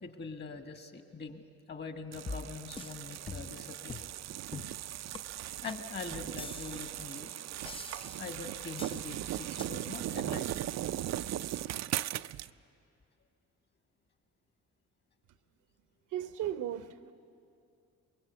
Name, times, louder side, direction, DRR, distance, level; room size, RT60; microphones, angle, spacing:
voice 1, 0.0-4.0 5.6-7.3 8.2-10.7, left 4 dB, 35° left, 7 dB, 1.9 m, -43 dB
sound 1, 2.1-12.5, right 13 dB, 60° right, 0.5 m, -38 dB
sound 2, 2.3-3.0 3.3-3.6 3.9-4.1 4.5-4.8 5.1-5.2 5.6-5.8 6.4-7.0 7.6-8.4 8.8-9.1 9.6-9.7, left 4 dB, 20° left, 0.5 m, -44 dB
voice 2, 16.1-17.1, right 11 dB, 80° right, 11 dB, 0.9 m, -36 dB
24.0 x 21.5 x 8.2 m, 2.4 s
cardioid pair, 90°, 30 cm